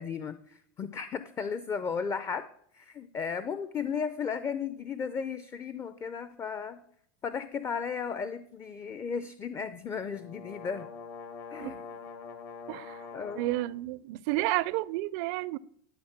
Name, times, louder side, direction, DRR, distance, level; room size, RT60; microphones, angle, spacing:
voice 1, 0.0-2.5 2.7-6.8 7.2-10.9 11.5-11.8 13.1-13.5, left 6 dB, 25° left, 0.5 m, -35 dB
sound 1, 9.8-13.7, left 5 dB, 65° left, 1.8 m, -44 dB
voice 2, 12.7-13.1 13.3-15.6, right 18 dB, 60° right, 0.4 m, -31 dB
11.5 x 4.3 x 7.3 m
supercardioid pair, 130°, 12 cm